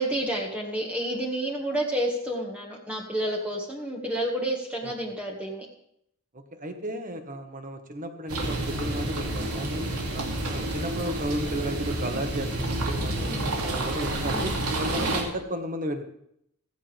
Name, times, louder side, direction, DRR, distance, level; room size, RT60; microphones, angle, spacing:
voice 1, 0.0-5.7 13.2-13.6 14.2-14.5 14.9-15.2, right 1 dB, 5° right, -2 dB, 1.9 m, -30 dB
voice 2, 6.3-9.8 10.1-16.1, right 1 dB, 35° right, 6 dB, 1.7 m, -34 dB
sound 1, 8.3-15.2, right 1 dB, 85° right, 3.0 m, -29 dB
15.5 x 15.5 x 3.6 m, 0.72 s
head